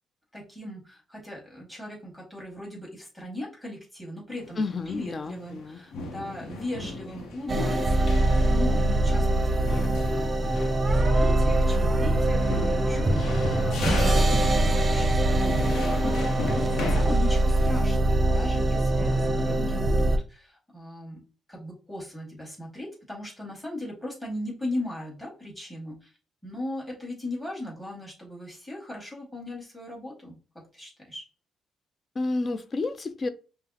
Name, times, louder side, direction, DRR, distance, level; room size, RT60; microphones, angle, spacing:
voice 1, 0.3-10.6 10.8-21.2 21.5-26.1 26.4-31.2, left 1 dB, 10° left, 2.2 m, -38 dB
sound 1, 4.4-5.6 5.9-17.0, left 2 dB, 75° left, 0.8 m, -36 dB
voice 2, 4.6-5.8 32.2-33.3, left 3 dB, 40° left, 0.5 m, -30 dB
sound 2, 7.5-20.2, right 1 dB, 25° right, 0.6 m, -23 dB
5.5 x 2.1 x 2.9 m
cardioid pair, 90°, 0 cm